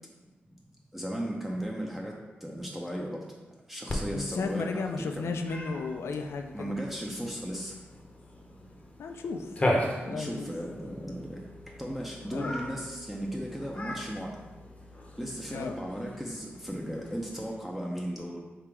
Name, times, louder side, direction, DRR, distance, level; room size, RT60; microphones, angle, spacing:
voice 1, 0.9-3.3 3.7-5.4 6.5-7.8 10.0-14.5 15.2-18.4, equal, 5° right, -2 dB, 0.5 m, -36 dB
Cat, 3.9-17.5, left 1 dB, 30° left, 0.7 m, -38 dB
voice 2, 4.1-6.7 9.0-9.6 10.0-10.5 12.3-12.6 15.5-15.7, left 4 dB, 85° left, 5 dB, 0.4 m, -34 dB
3.7 x 2.8 x 4.6 m, 1.2 s
cardioid pair, 85°, 4 cm